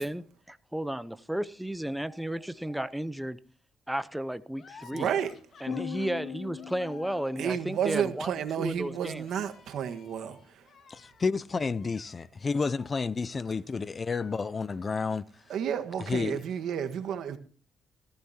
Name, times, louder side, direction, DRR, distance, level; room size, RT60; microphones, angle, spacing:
voice 1, 0.0-3.4 3.9-5.1 5.6-9.3, right 1 dB, 5° right, 0.7 m, -33 dB
sound 1, 4.5-13.6 14.0-15.0, left 5 dB, 55° left, 2.4 m, -54 dB
voice 2, 4.9-5.3 7.4-10.6 15.5-17.4, right 8 dB, 75° right, 1.5 m, -31 dB
sound 2, 5.7-8.1, left 10 dB, 90° left, 0.6 m, -41 dB
voice 3, 10.9-15.2 16.1-16.4, left 4 dB, 35° left, 0.5 m, -30 dB
18.0 x 14.5 x 2.9 m
cardioid pair, 90°, 0 cm